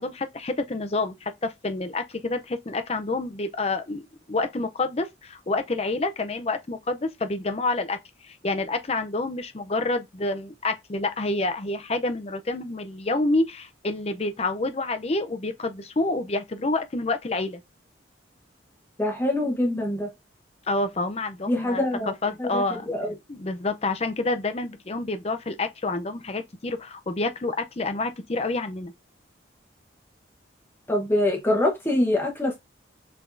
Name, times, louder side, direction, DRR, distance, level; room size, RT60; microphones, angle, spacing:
voice 1, 0.0-8.0 8.2-17.6 20.7-22.9 23.3-28.9, left 2 dB, 30° left, 0.5 m, -28 dB
voice 2, 19.0-20.1 21.5-22.1 22.4-23.1 30.9-32.6, left 1 dB, 10° left, 0.9 m, -24 dB
5.9 x 3.4 x 2.6 m
head